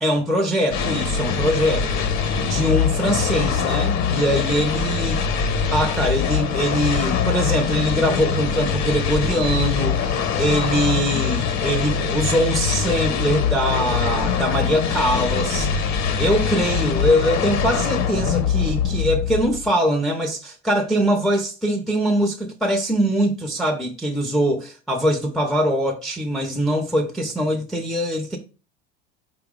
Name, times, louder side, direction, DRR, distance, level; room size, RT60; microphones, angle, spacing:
voice 1, 0.0-5.3 5.7-28.4, equal, ahead, 0.5 m, -22 dB
sound 1, 0.7-19.7, left 6 dB, 55° left, 0.7 m, -23 dB
4.3 x 2.0 x 3.5 m
supercardioid pair, 90°, 34 cm